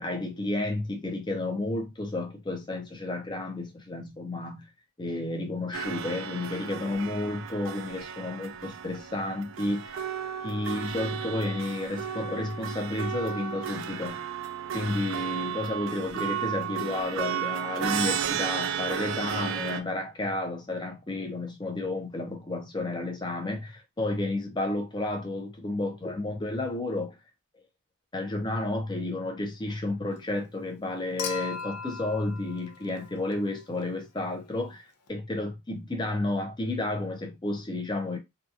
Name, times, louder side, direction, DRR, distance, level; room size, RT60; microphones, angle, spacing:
voice 1, 0.0-4.7 5.0-10.0 10.4-14.2 14.7-27.1 28.1-34.8 35.1-38.2, left 2 dB, 20° left, 0.4 m, -31 dB
sound 1, 5.7-19.8, right 8 dB, 60° right, 0.3 m, -33 dB
Human group actions / Chink clink / Liquid, 31.2-33.6 35.1-35.2, left 6 dB, 85° left, 0.5 m, -38 dB
2.7 x 2.2 x 2.3 m
head